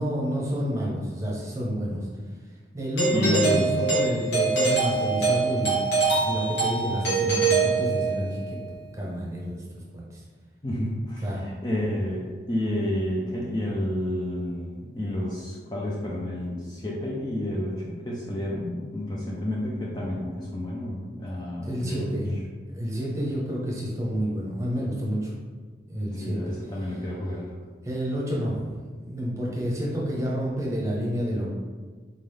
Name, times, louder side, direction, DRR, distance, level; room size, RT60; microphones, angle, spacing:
voice 1, 0.0-2.0 2.7-5.8 6.1-8.6 8.9-9.6 9.9-10.2 11.2-11.4 21.6-22.4 22.7-25.3 25.9-26.4 27.8-28.6 29.0-31.5, equal, 15° right, -5 dB, 1.0 m, -29 dB
Doorbell, 3.0-8.4, right 4 dB, 85° left, 1.4 m, -24 dB
voice 2, 3.1-3.8 10.6-22.2 26.2-27.5, left 1 dB, 25° left, -4 dB, 0.5 m, -30 dB
4.2 x 3.7 x 3.3 m, 1.5 s
head